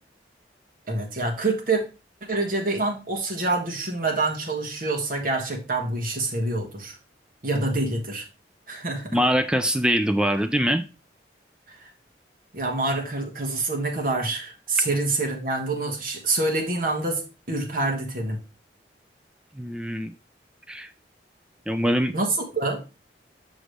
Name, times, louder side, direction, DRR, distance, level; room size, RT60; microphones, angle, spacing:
voice 1, 0.9-1.8 2.2-6.9 7.4-8.2 8.7-9.2 11.7-11.8 12.5-17.2 17.5-18.4 22.1-22.3 22.5-22.8, right 2 dB, 50° right, 2 dB, 1.4 m, -26 dB
voice 2, 9.1-10.8 19.6-20.1 20.7-20.9 21.7-22.2, equal, 5° right, 9 dB, 0.3 m, -23 dB
6.3 x 6.2 x 3.2 m, 0.30 s
head